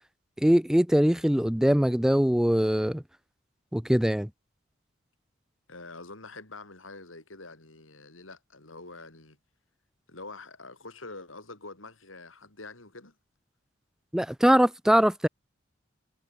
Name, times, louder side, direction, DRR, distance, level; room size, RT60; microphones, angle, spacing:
voice 1, 0.4-3.0 3.7-4.3 14.1-15.3, equal, 5° right, 0.4 m, -22 dB
voice 2, 5.7-9.4 10.1-13.1, left 3 dB, 90° left, 5.7 m, -45 dB
head